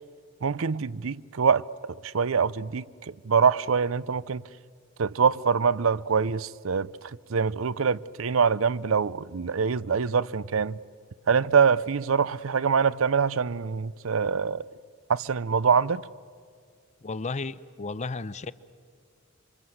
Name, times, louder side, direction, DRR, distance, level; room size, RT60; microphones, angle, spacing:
voice 1, 0.4-2.8 3.3-4.4 5.0-6.9 7.3-10.8 11.3-14.6 15.1-16.0, right 6 dB, 80° right, 0.6 m, -24 dB
voice 2, 17.0-18.5, left 3 dB, 35° left, 0.6 m, -33 dB
27.5 x 24.5 x 7.9 m
head